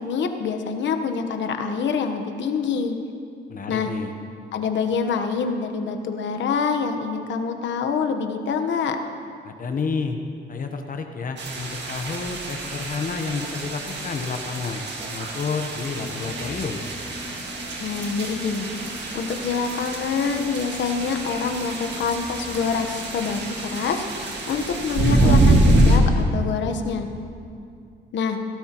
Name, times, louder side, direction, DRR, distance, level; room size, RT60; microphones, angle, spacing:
voice 1, 0.0-3.0 3.7-3.9 4.5-9.0 17.8-18.7 19.1-27.1 28.1-28.4, left 5 dB, 65° left, 6 dB, 1.1 m, -26 dB
voice 2, 3.5-4.1 9.4-10.2 10.5-14.8 15.1-16.8, left 4 dB, 45° left, 5 dB, 0.9 m, -30 dB
sound 1, 11.4-26.0, right 2 dB, 60° right, 1.8 m, -25 dB
sound 2, 16.0-23.9, left 3 dB, 15° left, 2.4 m, -40 dB
18.0 x 12.5 x 3.0 m, 2.4 s
cardioid pair, 90°, 20 cm